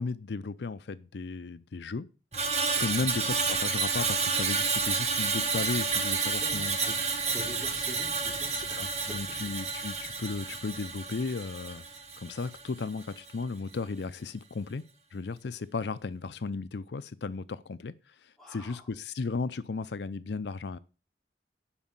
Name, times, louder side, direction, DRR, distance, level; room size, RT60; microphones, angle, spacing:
voice 1, 0.0-2.1 2.8-7.2 8.5-11.8 12.2-14.8 15.1-20.8, left 4 dB, 75° left, 0.5 m, -35 dB
Screech, 2.3-12.7 13.0-13.3, right 4 dB, 40° right, 1.9 m, -30 dB
voice 2, 6.4-9.2 18.4-18.8, equal, ahead, 3.2 m, -45 dB
11.5 x 5.3 x 7.2 m
head